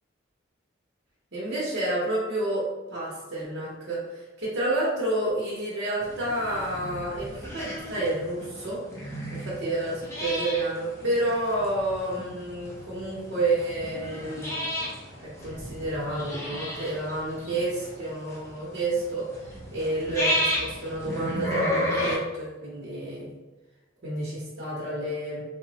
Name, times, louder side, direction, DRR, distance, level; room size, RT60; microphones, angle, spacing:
voice 1, 1.3-14.9 15.2-23.3 24.0-25.4, right 1 dB, 55° right, -8 dB, 0.7 m, -30 dB
sound 1, 6.0-22.2, left 1 dB, 15° left, 0.5 m, -33 dB
3.5 x 2.0 x 2.7 m, 1.2 s
head